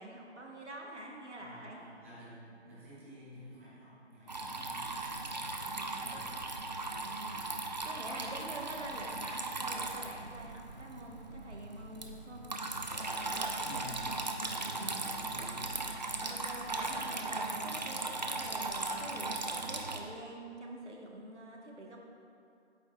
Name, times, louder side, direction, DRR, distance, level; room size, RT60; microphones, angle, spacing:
voice 1, 0.0-1.8 5.6-6.3 7.0-7.4 7.8-12.4 14.7-15.1 16.2-22.0, right 1 dB, 85° right, -1 dB, 1.3 m, -46 dB
voice 2, 1.4-5.3 5.9-6.4 13.6-14.5 15.1-15.9, equal, 10° right, -10 dB, 0.9 m, -51 dB
Water tap faucet / Trickle dribble, 4.3-20.0, right 2 dB, 40° right, 0.5 m, -38 dB
8.4 x 7.6 x 2.3 m, 2.5 s
figure-of-eight pair, 155°, 34 cm